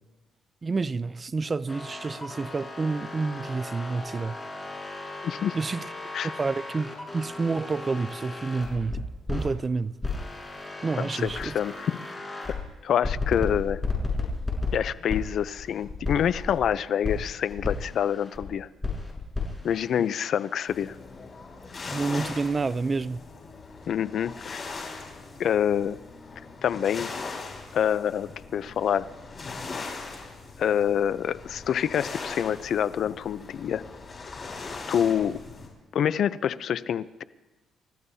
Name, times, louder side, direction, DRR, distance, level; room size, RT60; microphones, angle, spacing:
voice 1, 0.6-4.5 5.5-5.9 6.2-9.0 9.3-9.9 10.8-11.6 21.9-23.2, right 4 dB, 30° right, 0.5 m, -29 dB
sound 1, 1.7-9.5 10.0-12.6 13.0-16.7 17.0-18.5 18.8-20.9, left 3 dB, 15° left, 5.8 m, -34 dB
voice 2, 5.2-5.6 6.1-6.3 11.0-12.0 12.5-12.6 12.8-13.8 14.7-18.7 19.6-21.0 23.9-24.7 25.4-26.0 26.6-27.1 27.7-29.1 30.6-33.9 34.9-35.4 35.9-37.2, left 9 dB, 65° left, 0.6 m, -26 dB
sound 2, 20.7-35.7, left 4 dB, 40° left, 5.0 m, -40 dB
29.5 x 15.0 x 2.8 m
cardioid pair, 90°, 0 cm